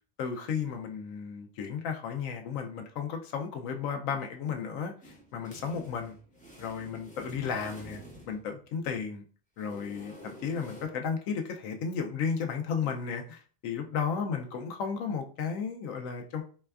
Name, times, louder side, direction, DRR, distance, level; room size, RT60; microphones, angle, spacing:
voice 1, 0.2-4.9 5.3-6.2 6.6-8.0 8.3-9.2 9.6-16.4, left 6 dB, 80° left, 4 dB, 1.0 m, -33 dB
sound 1, 5.0-8.8 9.6-10.9, equal, 10° left, 0.5 m, -50 dB
4.2 x 2.2 x 2.3 m, 0.40 s
omnidirectional pair, 1.4 m